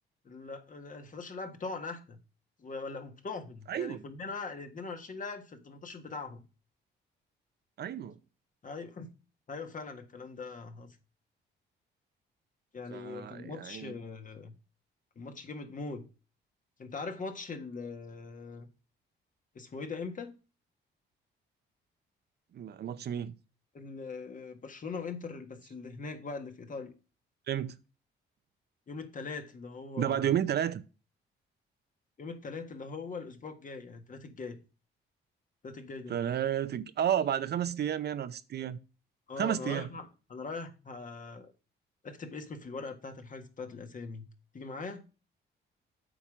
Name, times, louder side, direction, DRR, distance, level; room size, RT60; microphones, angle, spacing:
voice 1, 0.2-2.2 2.6-6.5 8.6-9.1 9.5-11.0 12.7-14.6 15.1-16.1 16.8-18.7 19.5-20.3 23.7-26.9 28.9-30.4 32.2-34.6 35.6-36.2 39.3-41.5 42.0-44.3 44.5-45.0, left 4 dB, 40° left, 1.6 m, -41 dB
voice 2, 3.7-4.0 7.8-8.2 12.9-13.9 22.5-23.3 27.5-27.8 30.0-30.8 36.1-38.8 39.4-39.9, right 10 dB, 55° right, 0.7 m, -31 dB
8.6 x 5.9 x 5.0 m
cardioid pair, 90°, 20 cm